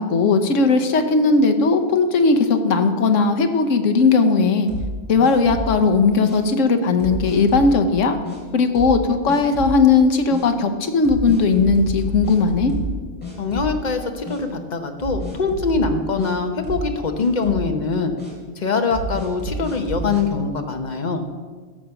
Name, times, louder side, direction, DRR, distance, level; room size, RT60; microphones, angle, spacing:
voice 1, 0.0-4.7 5.1-8.2 8.5-12.7, left 4 dB, 75° left, 7 dB, 1.2 m, -17 dB
sound 1, 4.7-5.8 6.2-6.4 7.0-7.7 8.2-8.4 8.7-9.0 9.3-9.8 10.3-10.4 11.0-13.0 13.2-13.9 14.2-14.4 15.0-16.3 16.6-16.9 17.2-17.7 18.2-18.3 18.9-20.2, right 1 dB, 5° left, 3.1 m, -30 dB
voice 2, 13.4-18.1 18.6-21.2, left 4 dB, 40° left, 6 dB, 0.9 m, -23 dB
13.0 x 5.1 x 7.0 m, 1.5 s
omnidirectional pair, 1.3 m